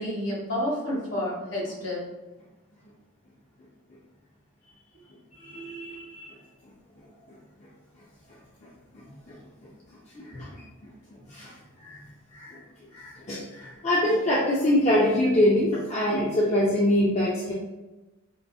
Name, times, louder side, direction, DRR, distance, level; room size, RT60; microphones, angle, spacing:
voice 1, 0.0-2.1, left 1 dB, 65° left, -5 dB, 1.3 m, -30 dB
voice 2, 5.4-6.3 10.3-10.5 11.4-11.5 11.9-12.0 12.4-12.5 12.9-17.5, left 1 dB, 35° left, -6 dB, 0.4 m, -24 dB
3.8 x 2.4 x 2.3 m, 1.1 s
head